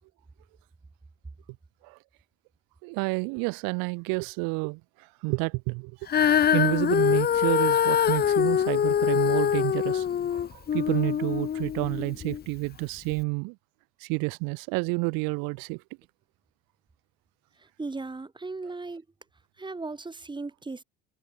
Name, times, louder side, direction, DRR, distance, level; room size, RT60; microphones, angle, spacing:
voice 1, 2.8-6.0 6.5-13.6 14.0-15.8, right 31 dB, 75° right, 2.4 m, -30 dB
Female singing, 6.1-12.4 13.1-13.2, left 9 dB, 25° left, 0.9 m, -24 dB
voice 2, 17.6-19.0 19.6-20.8, right 3 dB, 15° right, 3.5 m, -37 dB
supercardioid pair, 115°, 35 cm